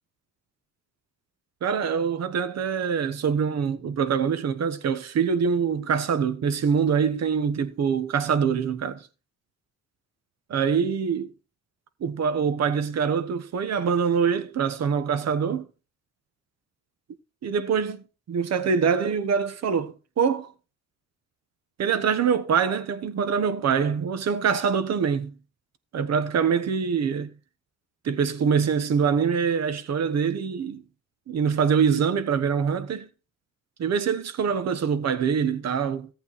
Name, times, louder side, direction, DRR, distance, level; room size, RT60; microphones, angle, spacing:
voice 1, 1.6-9.1 10.5-11.3 12.0-15.7 17.4-20.5 21.8-25.3 25.9-27.3 28.0-30.8 31.3-33.1 33.8-36.1, right 6 dB, 60° right, 1.2 m, -24 dB
14.5 x 8.2 x 4.1 m
cardioid pair, 90°, 30 cm